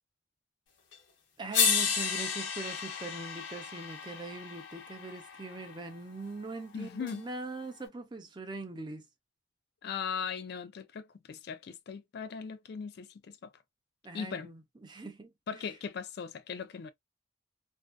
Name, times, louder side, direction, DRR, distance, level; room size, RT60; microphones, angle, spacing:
sound 1, 0.9-1.0 1.5-5.7 7.1-7.2, left 6 dB, 75° left, 1.0 m, -32 dB
voice 1, 1.4-9.0 14.0-15.3, right 3 dB, 25° right, 0.5 m, -42 dB
voice 2, 6.7-7.2 9.8-13.5 14.1-14.5 15.5-16.9, left 6 dB, 55° left, 0.3 m, -39 dB
2.6 x 2.2 x 2.2 m
head